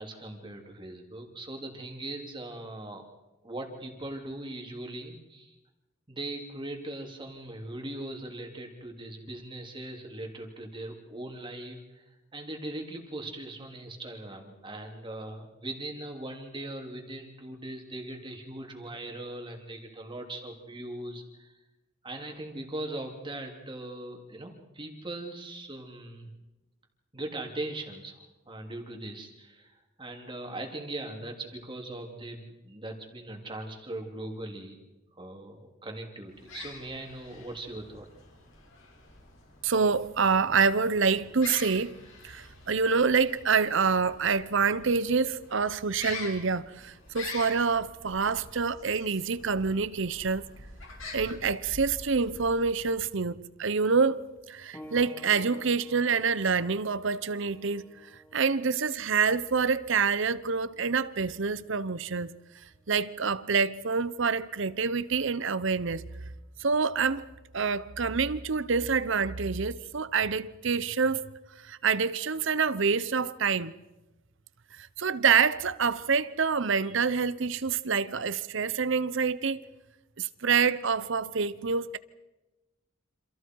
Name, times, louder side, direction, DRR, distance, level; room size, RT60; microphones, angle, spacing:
voice 1, 0.0-3.0 3.4-5.5 6.1-21.5 22.0-26.3 27.1-34.8 35.2-38.1, right 1 dB, 25° right, 3.2 m, -40 dB
sound 1, 36.3-53.1, left 3 dB, 75° left, 5.4 m, -46 dB
voice 2, 39.6-42.0 42.2-50.4 51.1-54.2 54.5-57.9 58.3-62.3 62.9-66.0 66.6-67.2 67.5-71.3 71.6-73.7 74.8-79.6 80.2-82.0, right 5 dB, 65° right, 0.8 m, -27 dB
sound 2, 54.7-65.0 65.9-66.0 66.8-66.9, equal, 10° left, 2.1 m, -54 dB
28.5 x 27.0 x 4.7 m
head